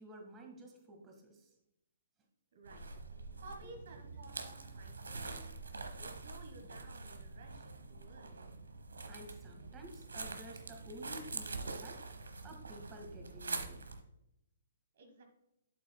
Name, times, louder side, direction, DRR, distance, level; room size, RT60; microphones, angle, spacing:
voice 1, 0.0-1.6 2.7-2.8 3.6-3.7 4.2-4.7 5.1-5.5 9.1-12.0 12.4-13.8, right 1 dB, 20° right, 2 dB, 1.7 m, -52 dB
voice 2, 2.5-2.9 3.4-5.4 5.9-8.4 14.9-15.2, right 2 dB, 60° right, 4 dB, 1.2 m, -55 dB
sound 1, 2.6-14.0, right 3 dB, 80° right, 0.9 m, -45 dB
8.3 x 7.6 x 2.2 m, 0.85 s
figure-of-eight pair, 125°, 0 cm